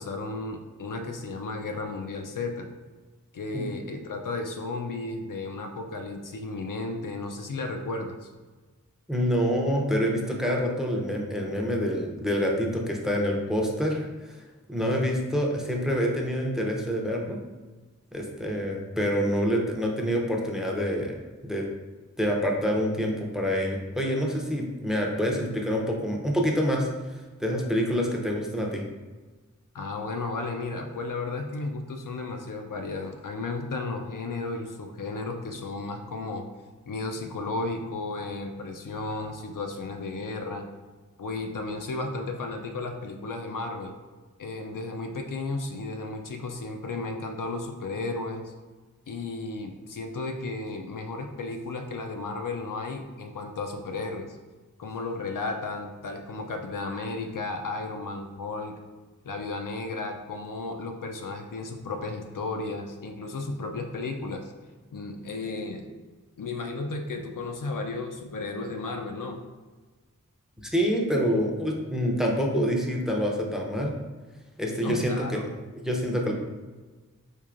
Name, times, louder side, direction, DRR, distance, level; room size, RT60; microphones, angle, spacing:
voice 1, 0.0-2.7 3.3-8.3 29.7-36.4 36.9-40.6 41.2-43.9 44.4-48.5 49.1-54.4 54.8-58.8 59.2-64.5 64.9-65.8 66.4-69.4 74.8-75.4, left 3 dB, 70° left, 4 dB, 0.5 m, -34 dB
voice 2, 9.1-17.4 18.1-21.2 21.4-21.6 22.2-28.8 70.6-73.9 74.6-75.4 75.8-76.3, equal, ahead, 0 dB, 0.5 m, -27 dB
4.5 x 2.6 x 2.5 m, 1.3 s
wide cardioid pair, 55°, 33 cm